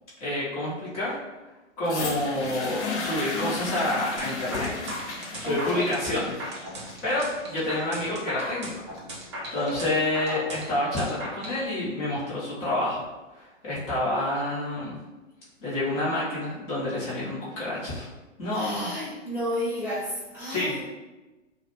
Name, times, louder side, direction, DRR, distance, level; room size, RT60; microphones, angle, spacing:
voice 1, 0.2-1.2 1.8-4.7 5.4-8.8 9.5-13.1 13.3-15.0 15.6-18.1 18.4-18.9 20.5-20.7, left 1 dB, 30° left, -8 dB, 0.7 m, -28 dB
sound 1, 1.8-9.8 10.7-10.8, left 3 dB, 60° left, 0.6 m, -35 dB
sound 2, 4.2-11.6, equal, 25° right, 0.3 m, -36 dB
voice 2, 5.4-5.9 18.5-20.8, left 1 dB, 5° right, -13 dB, 0.7 m, -32 dB
2.4 x 2.0 x 2.9 m, 1.1 s
figure-of-eight pair, 120°, 39 cm